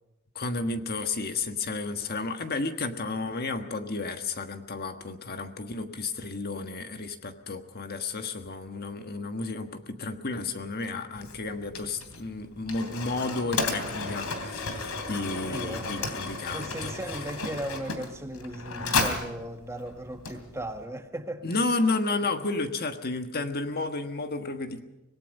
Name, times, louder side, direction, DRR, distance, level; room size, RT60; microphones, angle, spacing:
voice 1, 0.3-16.9 21.4-24.8, left 3 dB, 45° left, 7 dB, 1.5 m, -32 dB
Mechanisms, 11.2-20.8, left 3 dB, 85° left, 3.1 m, -33 dB
voice 2, 15.4-21.6, right 1 dB, 15° right, 6 dB, 1.3 m, -37 dB
25.5 x 19.0 x 5.4 m, 0.97 s
head